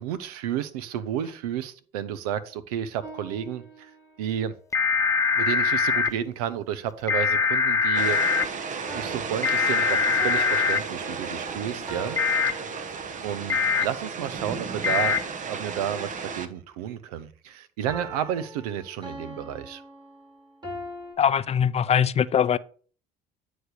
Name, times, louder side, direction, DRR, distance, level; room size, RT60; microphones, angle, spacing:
voice 1, 0.0-3.9 4.2-4.5 5.4-8.2 8.9-12.5 13.2-15.2 15.5-19.8, right 10 dB, 85° right, 0.7 m, -31 dB
sound 1, 3.0-4.4 8.9-13.4 17.9-21.1, right 2 dB, 25° right, 2.9 m, -42 dB
sound 2, 4.7-6.1 7.1-8.4 9.4-10.8 12.2-12.5 13.5-13.8 14.8-15.2, left 5 dB, 15° left, 0.9 m, -22 dB
sound 3, 8.0-16.5, right 5 dB, 45° right, 1.0 m, -34 dB
voice 2, 21.2-22.6, left 8 dB, 35° left, 0.4 m, -22 dB
9.5 x 3.2 x 6.5 m
hypercardioid pair, 70°, 19 cm